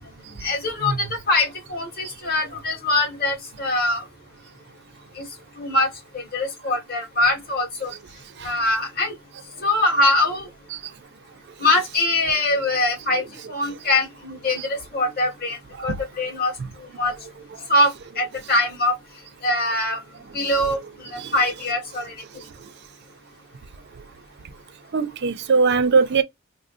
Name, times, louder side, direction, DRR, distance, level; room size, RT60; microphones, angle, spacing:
voice 1, 0.4-4.0 5.2-5.3 5.6-5.9 6.1-7.9 8.4-9.1 9.6-10.5 11.6-15.6 15.8-16.5 17.0-17.1 17.7-17.9 18.2-18.9 19.4-20.0 20.3-20.8 21.1-22.1, left 2 dB, 45° left, 1.6 m, -22 dB
voice 2, 24.9-26.2, right 4 dB, 50° right, 0.4 m, -20 dB
3.4 x 2.1 x 2.5 m
head